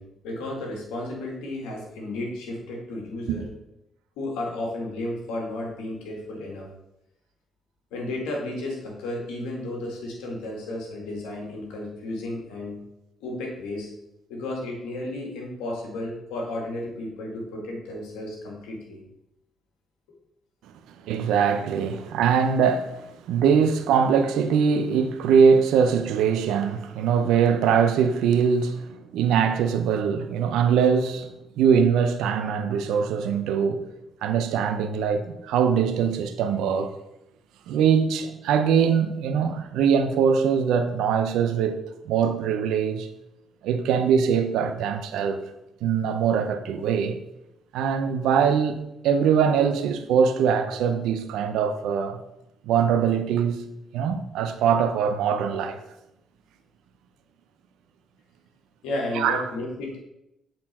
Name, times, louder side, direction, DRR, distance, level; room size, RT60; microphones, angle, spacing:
voice 1, 0.0-3.5 4.2-6.7 7.9-12.8 13.2-13.9 14.3-19.0 58.8-60.0, left 1 dB, 85° left, 1.9 m, -33 dB
voice 2, 21.1-31.3 31.6-33.8 34.2-36.9 37.7-41.8 42.0-43.1 43.6-45.4 45.8-47.2 47.7-52.2 52.7-53.6 53.9-55.8 59.1-59.4, right 7 dB, 80° right, 0.6 m, -22 dB
7.8 x 4.3 x 4.2 m
supercardioid pair, 55°, 0 cm